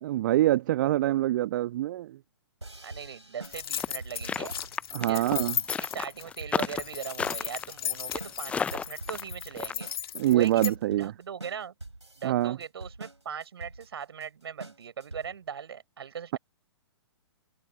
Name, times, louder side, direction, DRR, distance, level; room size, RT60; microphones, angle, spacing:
voice 1, 0.0-2.2 4.9-5.6 10.1-11.1 12.2-12.6, right 14 dB, 45° right, 1.5 m, -25 dB
sound 1, 2.6-15.5, right 2 dB, 90° right, 3.1 m, -45 dB
voice 2, 2.8-4.6 5.0-5.3 5.8-9.9 10.3-11.7 12.2-16.4, right 7 dB, 65° right, 5.7 m, -39 dB
sound 2, 3.4-10.7, left 9 dB, 55° left, 2.3 m, -36 dB
sound 3, 3.8-9.7, left 6 dB, 10° left, 0.4 m, -32 dB
figure-of-eight pair, 115°, 14 cm